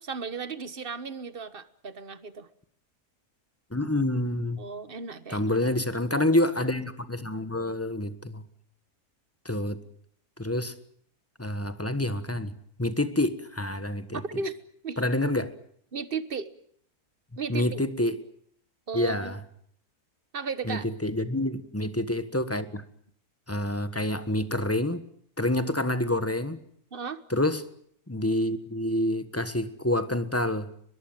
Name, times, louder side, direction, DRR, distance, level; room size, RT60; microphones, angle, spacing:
voice 1, 0.0-2.5 4.6-5.6 14.1-14.5 14.8-15.0 15.9-16.5 17.4-17.8 18.9-19.3 20.3-20.8 26.9-27.2, right 5 dB, 40° right, 13 dB, 1.4 m, -35 dB
voice 2, 3.7-4.7 5.3-8.4 9.4-9.8 10.4-10.7 11.4-14.2 15.0-15.5 17.5-18.2 18.9-19.4 20.6-22.8 23.5-25.0 25.4-26.6 27.3-27.6 28.1-30.7, left 1 dB, 10° left, 11 dB, 1.3 m, -27 dB
23.0 x 21.5 x 9.1 m, 0.65 s
omnidirectional pair, 1.6 m